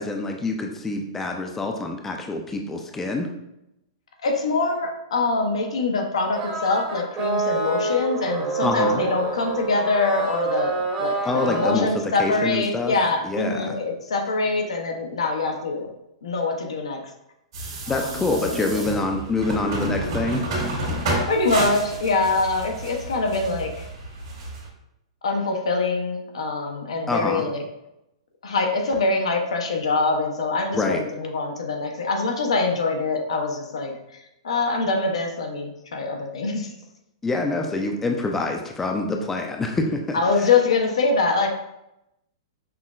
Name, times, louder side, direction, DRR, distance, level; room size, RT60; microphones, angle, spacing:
voice 1, 0.0-3.3 8.6-9.0 11.2-12.9 13.2-13.8 17.9-20.4 27.1-27.4 30.7-31.0 37.2-40.2, left 2 dB, 10° left, 3 dB, 0.3 m, -26 dB
voice 2, 4.2-15.9 16.2-17.1 17.9-18.9 21.3-23.8 25.2-27.6 28.4-34.0 34.4-36.7 40.1-41.5, left 3 dB, 85° left, 3 dB, 0.7 m, -24 dB
sound 1, 6.4-11.8, right 3 dB, 25° right, 0.7 m, -27 dB
sound 2, 17.5-24.7, right 1 dB, 65° right, 1.5 m, -30 dB
5.5 x 2.0 x 2.4 m, 0.86 s
hypercardioid pair, 145°, 3 cm